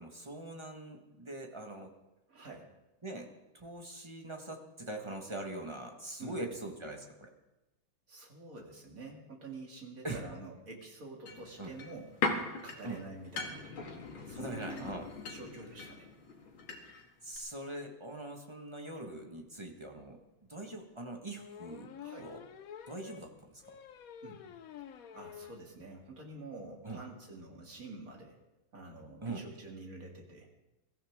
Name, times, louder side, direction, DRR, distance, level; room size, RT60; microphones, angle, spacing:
voice 1, 0.0-1.9 3.0-7.3 10.0-10.2 11.6-11.7 12.8-13.0 14.3-15.1 17.2-20.2 20.5-21.9 22.2-22.4 22.9-23.8 26.8-27.0 29.2-29.4, right 2 dB, 15° right, 2 dB, 1.3 m, -42 dB
voice 2, 2.3-2.7 6.2-6.4 8.1-12.4 12.6-13.6 14.3-15.0 15.3-16.1 22.0-22.3 24.2-24.4 25.1-28.4 28.7-30.5, right 3 dB, 45° right, 0 dB, 2.9 m, -48 dB
sound 1, 11.3-17.1 17.3-17.4, left 4 dB, 85° left, 2.5 m, -39 dB
sound 2, 19.6-19.7 20.0-20.1 21.3-25.6 26.0-26.1 26.4-26.5 26.7-26.9, left 9 dB, 60° left, 0.9 m, -49 dB
22.5 x 14.5 x 3.7 m, 1.0 s
omnidirectional pair, 2.2 m